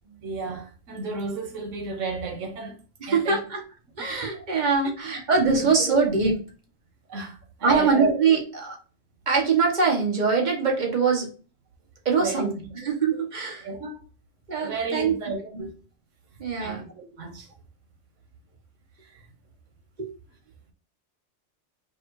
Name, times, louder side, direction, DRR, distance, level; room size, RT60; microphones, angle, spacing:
voice 1, 0.2-2.8 3.1-3.4 4.0-4.1 5.5-5.7 7.1-8.1 12.2-12.5 13.6-14.0 14.6-15.7 16.6-17.5 19.0-19.2, right 3 dB, 90° right, 1.2 m, -33 dB
voice 2, 3.0-3.6 4.0-6.4 7.6-8.8 9.3-11.3 12.0-13.7 14.5-15.1 15.5-15.6 16.4-16.8 20.0-20.1, right 5 dB, 40° right, 1.1 m, -23 dB
5.1 x 2.4 x 3.0 m
omnidirectional pair, 1.3 m